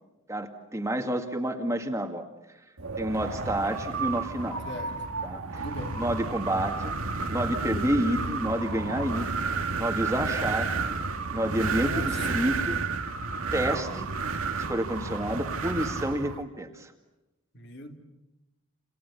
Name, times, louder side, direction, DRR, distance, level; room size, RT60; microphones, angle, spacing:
voice 1, 0.3-2.2 3.0-4.6 5.2-5.7 6.0-7.0 7.3-9.4 9.8-10.8 11.3-12.8 13.5-14.1 14.7-16.9, right 1 dB, 15° right, 5 dB, 2.0 m, -29 dB
Wind, 2.8-16.4, right 4 dB, 80° right, 2.0 m, -31 dB
voice 2, 5.6-6.0 11.8-12.4 17.5-18.0, left 2 dB, 55° left, 5 dB, 2.9 m, -39 dB
29.0 x 28.0 x 7.1 m, 1.0 s
head